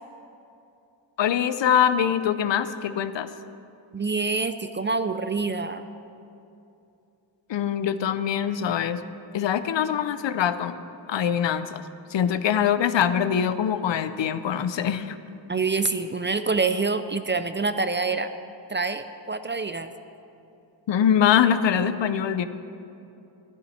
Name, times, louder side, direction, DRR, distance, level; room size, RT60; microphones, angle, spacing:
voice 1, 1.2-3.3 7.5-9.0 9.3-10.8 11.1-15.2 20.9-22.5, left 8 dB, 70° left, 12 dB, 0.6 m, -23 dB
voice 2, 3.9-5.8 15.5-18.3 18.7-19.9, right 4 dB, 25° right, 10 dB, 0.4 m, -26 dB
12.0 x 11.0 x 4.3 m, 2.7 s
wide cardioid pair, 80°, 46 cm